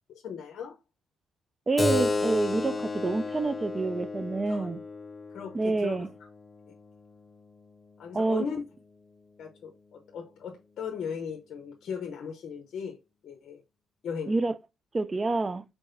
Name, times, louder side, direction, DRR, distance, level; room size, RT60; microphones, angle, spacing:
voice 1, 0.1-0.7 4.5-4.7 5.3-6.0 8.0-8.6 9.4-13.0 13.2-13.6 14.0-14.4, left 6 dB, 65° left, 0.8 m, -37 dB
voice 2, 1.7-4.8 5.5-6.1 8.1-8.5 14.3-14.5 14.9-15.6, right 3 dB, 25° right, 0.4 m, -27 dB
Keyboard (musical), 1.8-6.9, left 3 dB, 30° left, 0.5 m, -32 dB
3.9 x 3.8 x 2.6 m
cardioid pair, 90°, 0 cm